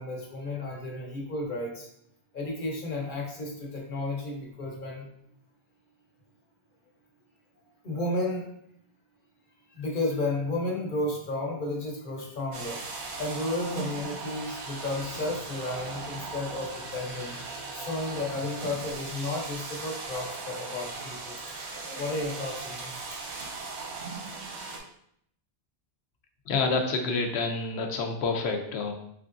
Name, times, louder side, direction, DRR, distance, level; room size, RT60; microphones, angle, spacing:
voice 1, 0.0-1.9 2.3-5.1 7.8-8.5 9.7-17.4 17.7-23.0, left 2 dB, 55° left, -2 dB, 1.0 m, -33 dB
sound 1, 12.5-24.8, right 3 dB, 90° right, 1.0 m, -38 dB
voice 2, 26.5-28.9, left 4 dB, 85° left, 4 dB, 0.9 m, -28 dB
3.5 x 3.3 x 2.5 m, 0.71 s
omnidirectional pair, 1.1 m